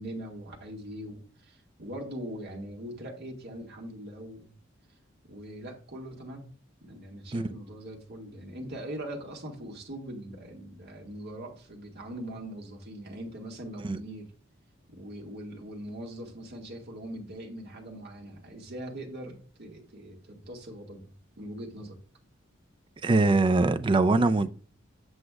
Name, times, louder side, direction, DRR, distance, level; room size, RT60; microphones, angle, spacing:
voice 1, 0.0-4.5 5.2-6.5 6.8-14.3 14.9-22.0, right 1 dB, 55° right, 1.9 m, -41 dB
voice 2, 23.0-24.5, right 3 dB, 25° right, 0.4 m, -22 dB
8.0 x 7.4 x 2.4 m
head